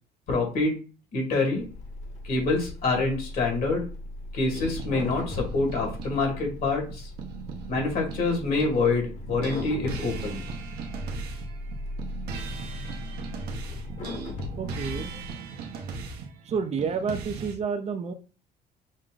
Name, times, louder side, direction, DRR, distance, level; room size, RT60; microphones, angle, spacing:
voice 1, 0.3-0.8 1.1-1.6 2.2-3.8 4.3-7.1 7.7-10.4, left 3 dB, 65° left, 2.3 m, -26 dB
sound 1, 1.5-15.3, left 2 dB, 45° left, 1.3 m, -38 dB
sound 2, 4.5-8.9 9.3-17.5, right 5 dB, 75° right, 0.9 m, -39 dB
voice 2, 14.5-15.1 16.5-18.1, right 6 dB, 40° right, 0.5 m, -30 dB
6.3 x 2.1 x 3.9 m
cardioid pair, 110°, 17 cm